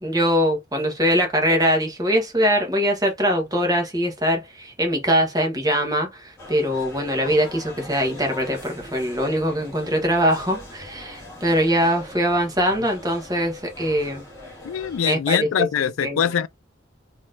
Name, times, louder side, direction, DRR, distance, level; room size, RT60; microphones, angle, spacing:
voice 1, 0.0-14.2 15.0-15.7 16.0-16.2, equal, 20° right, 1.2 m, -22 dB
sound 1, 6.4-15.0, left 1 dB, 15° left, 2.1 m, -41 dB
voice 2, 14.6-16.5, left 8 dB, 90° left, 0.4 m, -23 dB
4.0 x 3.0 x 2.5 m
head